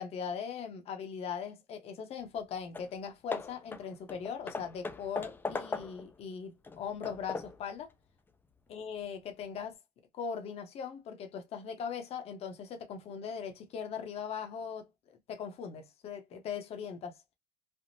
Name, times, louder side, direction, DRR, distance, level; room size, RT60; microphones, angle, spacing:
voice 1, 0.0-7.9 8.7-9.8 10.1-17.2, left 7 dB, 40° left, 0.7 m, -40 dB
Hammer / Wood, 2.4-2.5 2.7-3.0 3.3-6.2 6.6-7.7, left 4 dB, 15° left, 0.4 m, -39 dB
3.4 x 2.0 x 2.6 m
cardioid pair, 125°, 16 cm